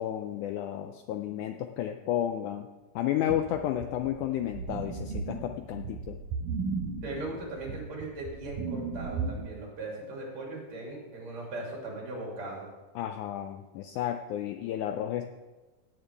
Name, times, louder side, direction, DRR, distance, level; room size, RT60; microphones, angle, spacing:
voice 1, 0.0-2.7 3.0-6.2 13.0-15.3, left 11 dB, 80° left, 6 dB, 1.8 m, -32 dB
sound 1, 3.3-9.5, right 5 dB, 75° right, 3.0 m, -35 dB
voice 2, 7.0-12.7, right 2 dB, 55° right, -2 dB, 3.8 m, -39 dB
17.0 x 9.0 x 3.4 m, 1.2 s
omnidirectional pair, 4.0 m